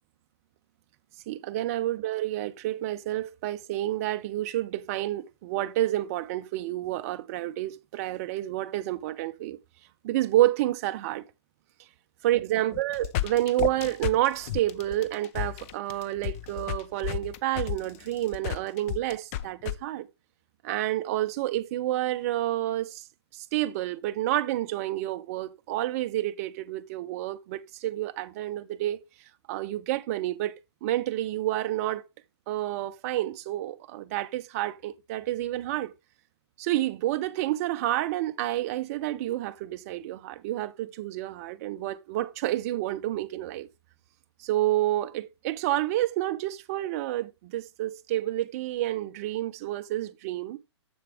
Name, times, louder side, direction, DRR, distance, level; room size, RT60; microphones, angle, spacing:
voice 1, 1.3-9.6 10.0-11.2 12.2-20.1 20.6-23.0 23.3-29.0 29.5-30.5 30.8-32.0 32.5-35.9 36.6-43.7 44.4-50.6, right 14 dB, 35° right, 0.5 m, -29 dB
sound 1, 12.7-19.8, left 12 dB, 30° left, 0.4 m, -32 dB
7.1 x 6.4 x 3.3 m
hypercardioid pair, 135°, 15 cm